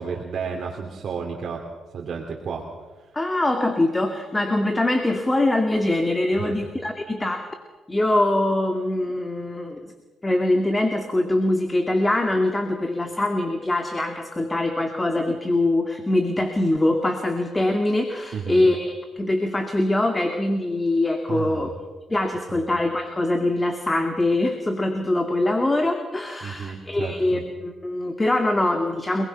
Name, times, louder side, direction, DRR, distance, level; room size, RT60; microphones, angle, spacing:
voice 1, 0.0-1.6 1.9-2.7 6.3-6.6 18.3-18.7 21.3-21.7 22.5-22.7 26.4-27.4, right 6 dB, 55° right, 0 dB, 3.3 m, -32 dB
voice 2, 3.1-7.5 7.9-9.9 10.2-21.7 22.1-29.3, left 1 dB, 15° left, 5 dB, 2.4 m, -23 dB
29.5 x 21.0 x 6.0 m, 1.2 s
cardioid pair, 90°, 0 cm